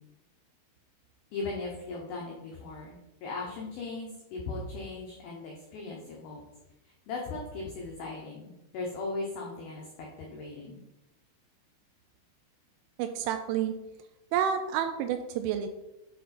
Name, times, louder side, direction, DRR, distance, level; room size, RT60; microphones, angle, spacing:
voice 1, 1.3-6.4 7.1-10.8, left 3 dB, 90° left, -1 dB, 2.1 m, -38 dB
voice 2, 13.0-13.7 14.3-15.7, right 9 dB, 85° right, 7 dB, 2.8 m, -29 dB
9.3 x 3.8 x 4.2 m, 0.95 s
omnidirectional pair, 5.8 m